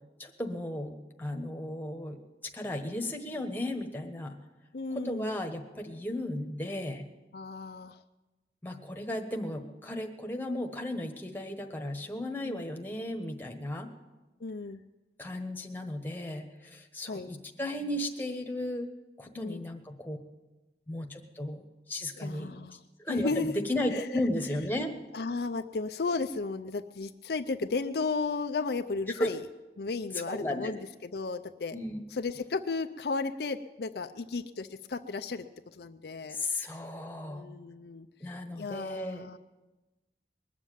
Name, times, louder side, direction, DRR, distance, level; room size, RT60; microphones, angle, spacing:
voice 1, 0.2-2.2 2.5-4.4 4.9-7.0 8.6-13.9 15.2-18.9 19.2-20.2 20.9-22.5 23.0-24.9 29.1-29.3 30.1-30.7 31.7-32.0 36.3-37.5 38.2-39.3, left 1 dB, 10° left, 4 dB, 1.2 m, -35 dB
voice 2, 4.7-5.3 7.3-8.0 12.4-12.6 14.4-14.8 17.1-17.3 19.4-19.6 22.2-22.8 23.1-23.6 23.9-24.2 25.1-29.4 29.8-31.8 32.1-35.4 35.7-36.4 36.6-36.7 37.2-38.1 38.6-39.4, left 4 dB, 65° left, 8 dB, 0.5 m, -34 dB
21.0 x 7.3 x 9.2 m, 1.1 s
head